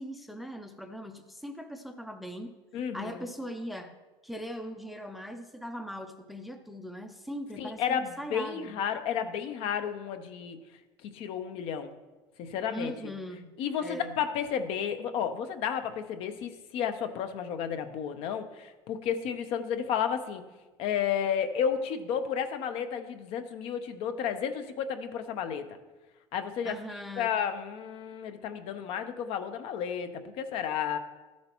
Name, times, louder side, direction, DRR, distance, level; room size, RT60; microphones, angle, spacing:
voice 1, 0.0-2.5 2.9-4.0 4.2-8.8 12.7-14.2 26.6-27.3, equal, ahead, 7 dB, 0.4 m, -40 dB
voice 2, 2.7-3.3 7.6-10.6 11.1-11.9 12.4-12.9 13.6-20.4 20.8-25.6 26.3-26.8 27.2-31.0, left 8 dB, 60° left, 8 dB, 0.7 m, -32 dB
13.5 x 7.4 x 3.0 m, 1.2 s
cardioid pair, 160°, 11 cm